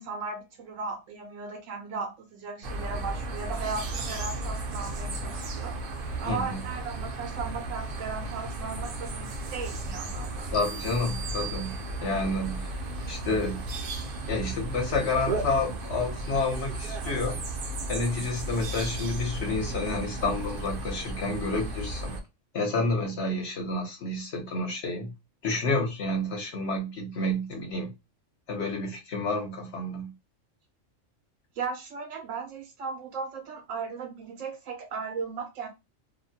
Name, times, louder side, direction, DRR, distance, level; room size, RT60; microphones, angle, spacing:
voice 1, 0.0-5.8 6.2-10.5 31.6-35.7, right 5 dB, 80° right, 1.0 m, -36 dB
sound 1, 2.6-22.2, right 2 dB, 55° right, 0.6 m, -34 dB
voice 2, 6.3-6.6 10.5-12.7 13.1-13.6 14.3-17.4 17.9-22.1 22.5-25.1 25.4-27.9 28.5-30.1, left 2 dB, 60° left, 1.0 m, -29 dB
sound 2, 10.5-12.4, right 7 dB, 40° left, 0.4 m, -41 dB
2.6 x 2.1 x 2.7 m
omnidirectional pair, 1.3 m